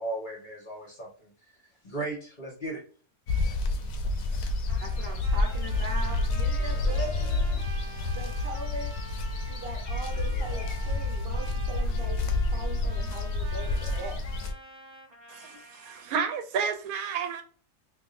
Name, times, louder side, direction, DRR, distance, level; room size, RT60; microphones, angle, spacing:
voice 1, 0.0-1.5 1.8-2.8, right 2 dB, 35° left, -3 dB, 1.3 m, -36 dB
sound 1, 3.3-14.5, left 2 dB, 75° left, 1.0 m, -29 dB
Trumpet, 4.7-16.3, right 1 dB, 25° right, 1.0 m, -47 dB
voice 2, 4.8-7.6 8.1-8.9 9.5-13.7 14.0-14.2, right 2 dB, 50° right, 0 dB, 0.8 m, -40 dB
sound 2, 6.6-7.7 10.1-11.1 13.5-14.2, left 3 dB, 50° left, 1.3 m, -48 dB
voice 3, 15.3-17.4, right 6 dB, 75° right, 6 dB, 1.0 m, -31 dB
3.6 x 2.7 x 2.5 m, 0.42 s
omnidirectional pair, 1.5 m